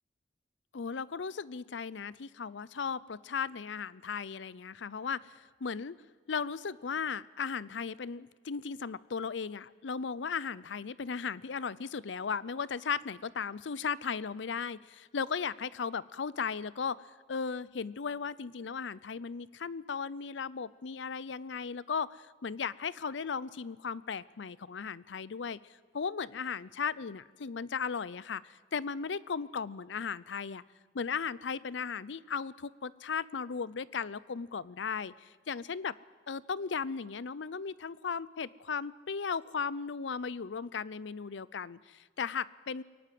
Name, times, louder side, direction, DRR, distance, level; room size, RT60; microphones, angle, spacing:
voice 1, 0.7-5.9 6.3-17.0 17.3-25.6 25.9-30.6 30.9-35.9 36.3-42.8, left 6 dB, 80° left, 20 dB, 0.6 m, -36 dB
22.5 x 18.5 x 7.7 m, 1.4 s
head